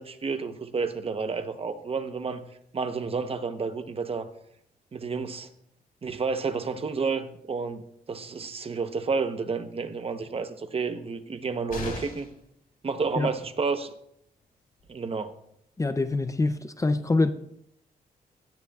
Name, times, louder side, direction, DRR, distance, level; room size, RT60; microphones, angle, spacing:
voice 1, 0.0-2.4 2.7-4.3 4.9-5.5 6.0-7.8 8.1-12.3 12.8-13.9 14.9-15.3, right 4 dB, 40° right, 0.9 m, -30 dB
sound 1, 11.7-12.4 14.4-14.5 14.8-14.9, left 3 dB, 65° left, 3.7 m, -36 dB
voice 2, 15.8-17.3, left 3 dB, 20° left, 0.5 m, -25 dB
17.5 x 12.5 x 2.4 m
wide cardioid pair, 130°, 16 cm